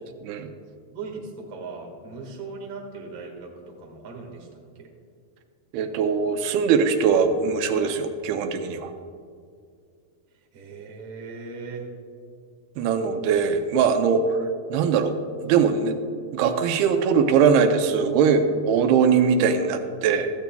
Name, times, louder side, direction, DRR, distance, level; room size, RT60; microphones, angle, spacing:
voice 1, 0.9-4.9 10.5-11.8, right 4 dB, 50° right, 0 dB, 2.4 m, -38 dB
voice 2, 5.7-8.9 12.8-14.4 14.7-15.2 15.4-15.9 16.3-20.3, right 6 dB, 90° right, 7 dB, 2.7 m, -21 dB
16.0 x 14.0 x 2.3 m, 2.2 s
omnidirectional pair, 4.4 m